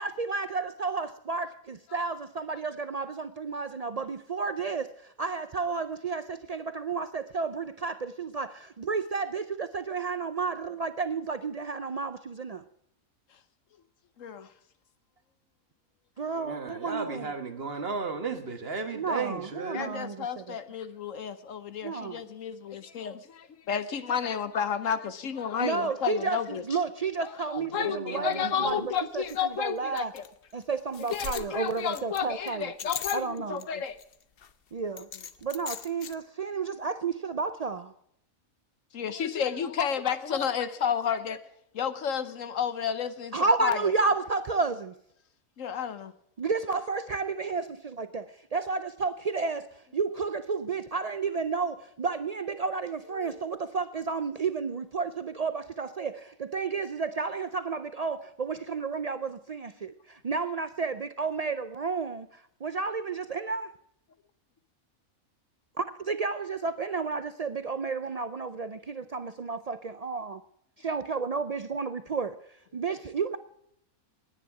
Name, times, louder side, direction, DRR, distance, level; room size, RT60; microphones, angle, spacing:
voice 1, 0.0-12.6 16.2-17.3 18.9-20.6 21.8-22.3 25.6-30.1 30.5-32.7 33.1-33.6 34.7-35.1 35.4-37.9 43.3-44.9 46.4-49.7 49.9-63.7 65.8-70.4 70.8-72.4 72.7-73.4, right 4 dB, 80° right, 11 dB, 0.3 m, -31 dB
voice 2, 14.2-14.5 19.7-26.6 27.2-30.2 31.1-34.0 38.9-41.4 41.7-43.8 45.6-46.1 53.1-53.4, left 8 dB, 65° left, 13 dB, 1.2 m, -31 dB
voice 3, 16.3-20.0 27.6-28.9, right 4 dB, 45° right, 7 dB, 1.7 m, -35 dB
sound 1, 28.3-28.4 28.7-28.8 29.3-29.4 30.0-30.3 30.6-30.7 30.9-33.6 34.0-34.5 35.0-36.1, left 7 dB, 50° left, 0.9 m, -39 dB
18.0 x 9.9 x 4.8 m, 0.73 s
omnidirectional pair, 1.5 m